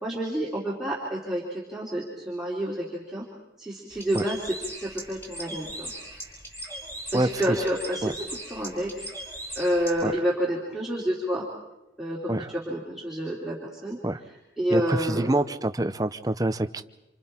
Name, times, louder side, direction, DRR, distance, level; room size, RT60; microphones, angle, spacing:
voice 1, 0.0-3.3 3.6-5.9 7.1-8.2 8.5-8.9 9.6-11.4 12.0-13.6 13.8-14.0 14.6-15.4, equal, 5° right, -7 dB, 3.1 m, -29 dB
Bird, 3.9-10.0, right 1 dB, 15° left, 4.8 m, -39 dB
voice 2, 7.1-7.6 8.0-8.1 10.0-10.1 12.3-12.5 14.0-14.2 14.7-16.8, right 1 dB, 20° right, 10 dB, 0.7 m, -26 dB
28.0 x 27.5 x 4.4 m, 0.95 s
head